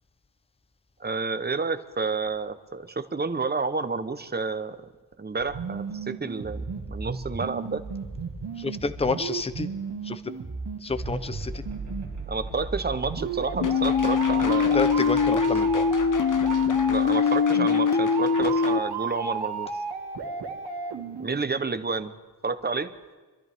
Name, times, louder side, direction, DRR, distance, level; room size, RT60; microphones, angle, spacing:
voice 1, 1.0-4.9 5.2-7.8 12.3-14.9 16.9-19.7 21.2-22.1 22.4-22.9, right 4 dB, 25° right, 10 dB, 0.8 m, -30 dB
sound 1, 5.4-21.4, right 5 dB, 70° right, 1.9 m, -34 dB
voice 2, 8.6-9.7 10.0-10.2 10.8-11.6 14.7-15.9, left 4 dB, 15° left, 12 dB, 0.6 m, -29 dB
sound 2, 11.0-17.1, right 3 dB, 45° right, 2.1 m, -40 dB
sound 3, 13.6-18.8, left 6 dB, 50° left, 0.8 m, -22 dB
25.5 x 13.5 x 3.5 m, 1.3 s
wide cardioid pair, 175°, 41 cm